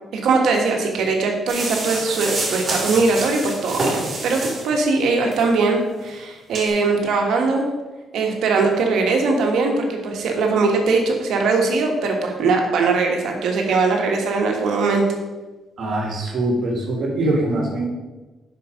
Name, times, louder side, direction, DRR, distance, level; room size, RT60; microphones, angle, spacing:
voice 1, 0.1-7.7 8.1-15.0, right 3 dB, 75° right, 2 dB, 1.6 m, -20 dB
sound 1, 1.5-4.8 5.3-5.4 6.0-6.1 6.5-6.7, right 2 dB, 35° right, 2.6 m, -27 dB
voice 2, 15.8-17.9, right 1 dB, 60° right, 0 dB, 2.1 m, -23 dB
7.0 x 5.9 x 5.2 m, 1.2 s
cardioid pair, 90°, 0 cm